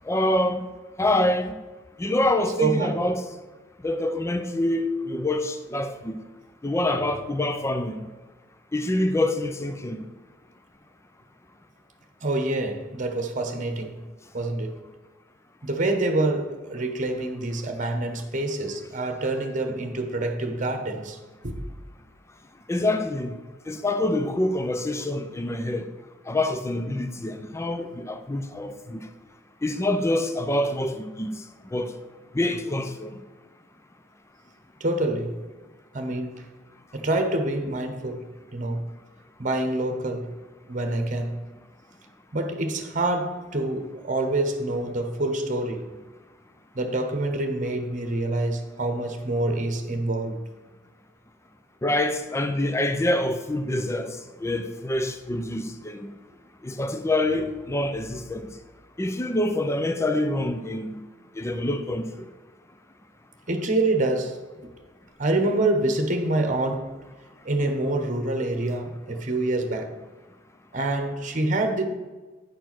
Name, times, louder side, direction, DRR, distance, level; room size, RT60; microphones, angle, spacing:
voice 1, 0.1-0.6 1.0-1.6 2.0-3.2 3.8-6.2 6.6-8.0 8.7-10.0 22.7-23.3 23.7-25.9 26.3-29.0 29.6-31.4 31.7-31.9 32.3-33.1 51.8-56.1 56.6-58.5 59.0-61.1 61.4-62.1, left 1 dB, 15° left, 0.5 m, -26 dB
voice 2, 2.6-3.0 12.2-14.0 14.3-14.7 15.6-21.2 21.4-21.6 34.8-35.4 35.9-36.5 36.9-38.3 38.5-38.8 39.4-40.3 40.7-41.4 42.3-45.8 46.7-50.4 63.5-64.4 65.2-66.9 67.4-69.9 70.7-71.8, right 2 dB, 45° right, 1.1 m, -26 dB
9.4 x 4.5 x 6.0 m
head